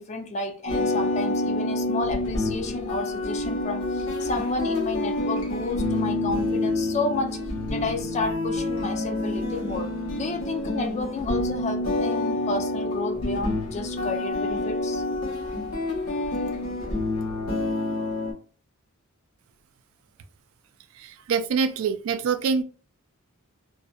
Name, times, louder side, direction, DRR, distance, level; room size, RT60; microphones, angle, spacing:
voice 1, 0.0-7.4 7.7-9.9 10.2-15.0, left 3 dB, 30° left, 0.3 m, -31 dB
sound 1, 0.7-18.3, left 2 dB, 85° left, 1.0 m, -28 dB
voice 2, 21.0-22.6, right 5 dB, 70° right, 0.3 m, -25 dB
2.6 x 2.1 x 2.3 m
head